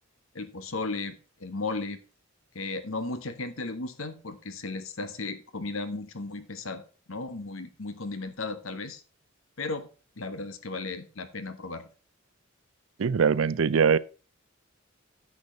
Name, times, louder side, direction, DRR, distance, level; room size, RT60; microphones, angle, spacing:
voice 1, 0.3-2.0 2.5-6.8 7.1-9.0 9.6-9.9 10.2-11.9, left 3 dB, 85° left, 1.2 m, -35 dB
voice 2, 13.0-14.0, right 6 dB, 75° right, 0.5 m, -22 dB
9.8 x 7.0 x 3.9 m
head